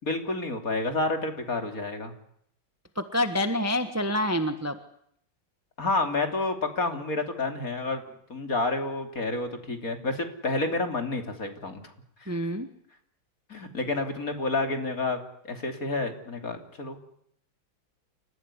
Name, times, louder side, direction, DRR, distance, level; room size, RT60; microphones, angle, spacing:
voice 1, 0.0-2.1 5.8-8.0 8.3-11.8 13.5-15.2 15.4-17.0, left 2 dB, 45° left, 5 dB, 3.6 m, -29 dB
voice 2, 2.9-4.8 12.3-12.7, left 1 dB, 10° right, 9 dB, 1.2 m, -27 dB
29.5 x 15.5 x 9.9 m, 0.70 s
omnidirectional pair, 2.1 m